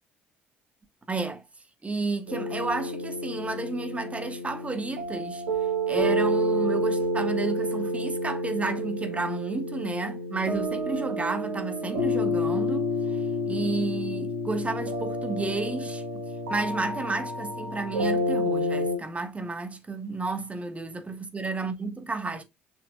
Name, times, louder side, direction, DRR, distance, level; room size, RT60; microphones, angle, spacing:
voice 1, 1.1-1.4 1.8-5.4 5.9-16.0 16.5-22.4, right 3 dB, 20° right, 1.4 m, -32 dB
sound 1, 2.3-19.0, equal, 75° right, 1.9 m, -29 dB
6.8 x 5.7 x 2.6 m
figure-of-eight pair, 50°, 6 cm